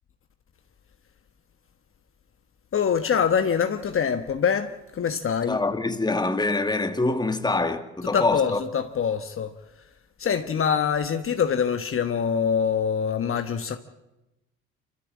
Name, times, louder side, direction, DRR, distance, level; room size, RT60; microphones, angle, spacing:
voice 1, 2.7-5.6 8.1-9.5 10.2-13.8, left 7 dB, 45° left, 1.4 m, -24 dB
voice 2, 5.5-8.6, left 2 dB, 15° left, 2.0 m, -25 dB
25.0 x 14.0 x 8.5 m
supercardioid pair, 75°, 30 cm